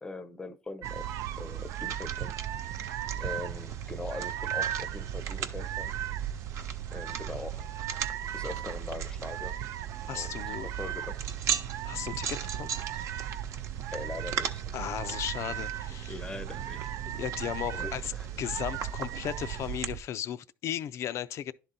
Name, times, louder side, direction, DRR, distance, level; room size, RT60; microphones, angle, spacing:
voice 1, 0.0-1.1 1.4-2.4 2.7-2.8 3.2-6.0 6.9-8.0 8.3-9.6 10.1-11.3 13.9-14.7 16.1-17.2 17.7-18.3, left 3 dB, 15° left, 0.6 m, -42 dB
sound 1, 0.8-19.8, right 8 dB, 65° right, 0.8 m, -41 dB
sound 2, 0.8-20.0, right 11 dB, 85° right, 0.4 m, -36 dB
voice 2, 10.1-10.7 11.8-12.7 14.7-16.2 17.2-18.1 18.4-21.5, left 10 dB, 60° left, 0.4 m, -35 dB
11.0 x 3.7 x 4.1 m
cardioid pair, 125°, 5 cm